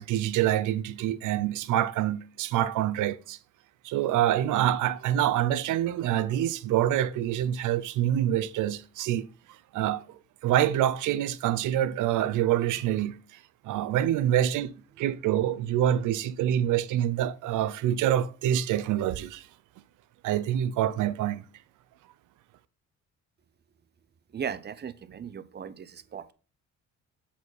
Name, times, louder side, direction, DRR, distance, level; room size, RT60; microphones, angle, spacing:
voice 1, 0.0-3.4 3.8-9.3 9.7-13.2 13.6-19.5 20.2-21.4, right 11 dB, 80° right, 0.6 m, -26 dB
voice 2, 24.3-26.3, right 7 dB, 35° right, 0.6 m, -37 dB
7.1 x 4.2 x 4.6 m
cardioid pair, 90°, 30 cm